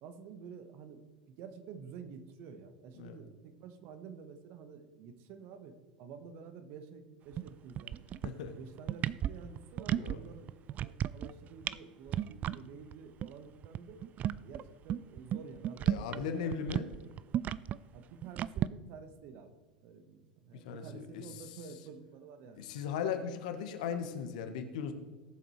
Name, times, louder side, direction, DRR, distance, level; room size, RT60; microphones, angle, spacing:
voice 1, 0.0-8.1 8.6-10.5 10.8-14.0 14.4-16.9 17.9-22.7, right 6 dB, 50° right, 9 dB, 1.3 m, -50 dB
sound 1, 7.3-7.5 7.8-8.5 8.8-10.2 10.5-11.3 11.6-11.8 12.1-12.6 12.9-13.0 13.2-13.3 13.6-16.2 16.5-18.7, right 11 dB, 35° right, 0.3 m, -33 dB
voice 2, 8.2-8.6 9.9-10.2 15.9-16.9 20.5-21.2 22.6-24.9, left 7 dB, 65° left, 7 dB, 1.3 m, -37 dB
18.0 x 7.7 x 3.2 m, 1.3 s
figure-of-eight pair, 80°, 4 cm